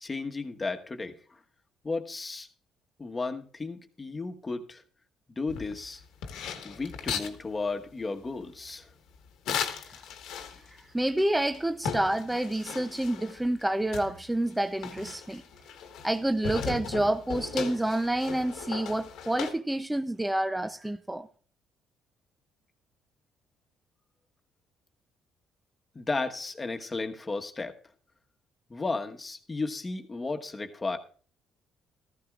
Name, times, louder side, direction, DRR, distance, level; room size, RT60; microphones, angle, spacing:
voice 1, 0.0-1.4 1.8-2.5 3.0-4.8 5.3-6.0 6.6-8.9 25.9-27.8 28.7-31.0, left 3 dB, 25° left, 1.2 m, -34 dB
sound 1, 5.5-7.4 9.4-10.8 11.2-11.3 11.5-13.4 13.9-16.2 16.4-19.5, left 6 dB, 80° left, 1.4 m, -37 dB
voice 2, 10.9-15.4 16.0-21.3, right 1 dB, 10° right, 0.5 m, -28 dB
15.0 x 14.0 x 2.4 m
cardioid pair, 95°, 0 cm